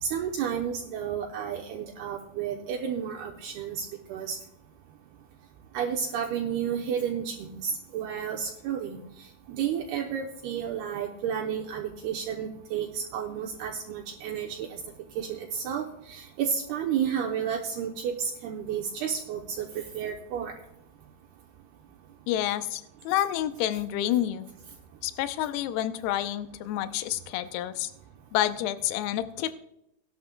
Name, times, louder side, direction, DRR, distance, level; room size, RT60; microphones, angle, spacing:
voice 1, 0.0-4.4 5.7-9.0 9.6-14.8 15.2-19.7 19.9-20.5, right 8 dB, 75° right, 1 dB, 2.7 m, -31 dB
voice 2, 22.3-24.5 25.0-27.9 28.3-29.5, left 12 dB, 80° left, 11 dB, 2.5 m, -29 dB
19.0 x 11.5 x 2.2 m, 0.81 s
omnidirectional pair, 5.0 m